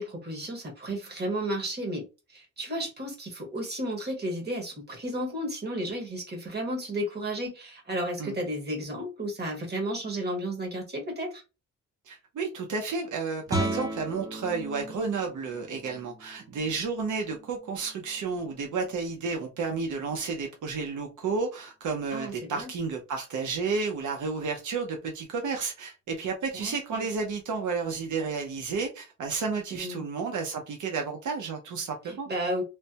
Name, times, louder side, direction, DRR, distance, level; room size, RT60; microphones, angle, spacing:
voice 1, 0.0-11.4 22.1-22.7 26.5-27.1 29.7-30.0 32.0-32.6, right 1 dB, 35° right, 1.3 m, -33 dB
voice 2, 12.1-32.3, right 4 dB, 85° right, 0.7 m, -31 dB
Guitar, 13.5-19.0, right 1 dB, 10° right, 0.6 m, -37 dB
3.2 x 2.1 x 2.8 m
cardioid pair, 115°, 30 cm